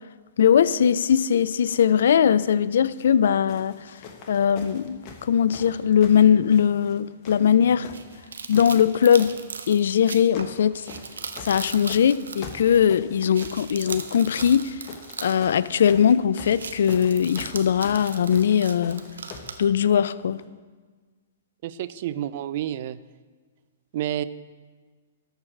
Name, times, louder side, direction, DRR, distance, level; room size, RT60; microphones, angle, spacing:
voice 1, 0.4-4.0 4.3-7.9 8.5-9.3 9.7-10.9 11.4-14.8 15.2-19.0 19.6-20.4, left 8 dB, 70° left, 0.4 m, -20 dB
sound 1, 2.8-3.1 3.5-7.0 7.2-8.2 8.5-9.4 10.0-10.6 10.9-19.6 20.4-20.5, left 4 dB, 40° left, 1.3 m, -43 dB
sound 2, 7.9-12.9 13.2-16.1 16.3-19.6, right 5 dB, 80° right, 0.8 m, -39 dB
voice 2, 21.6-23.0 23.9-24.2, right 12 dB, 50° right, 0.4 m, -29 dB
13.0 x 4.7 x 6.4 m
hypercardioid pair, 125°, 0 cm